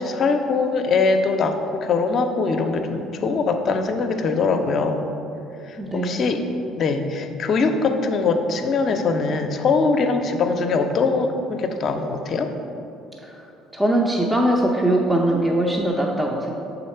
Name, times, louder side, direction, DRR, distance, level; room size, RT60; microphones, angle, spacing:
voice 1, 0.0-5.1 5.7-6.4 6.8-12.5, left 4 dB, 55° left, 6 dB, 0.5 m, -22 dB
voice 2, 5.8-6.2 13.2-13.4 13.7-16.5, right 1 dB, 10° right, -1 dB, 0.6 m, -21 dB
6.3 x 3.9 x 4.3 m, 2.8 s
hypercardioid pair, 70°, 0 cm